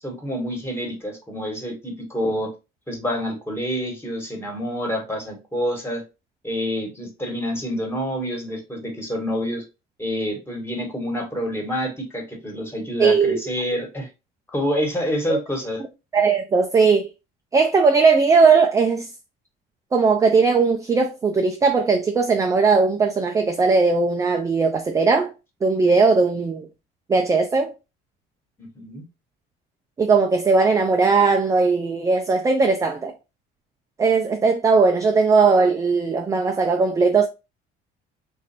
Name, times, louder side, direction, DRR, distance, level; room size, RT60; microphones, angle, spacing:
voice 1, 0.0-2.5 2.9-6.0 6.4-9.6 10.0-14.1 14.5-15.8 28.6-29.0, equal, 10° left, 1.4 m, -27 dB
voice 2, 13.0-13.4 15.3-15.4 16.1-17.1 17.5-19.1 19.9-25.3 25.6-26.7 27.1-27.7 30.0-33.1 34.0-37.3, right 4 dB, 15° right, 0.4 m, -18 dB
3.1 x 2.5 x 4.2 m
cardioid pair, 125°, 20 cm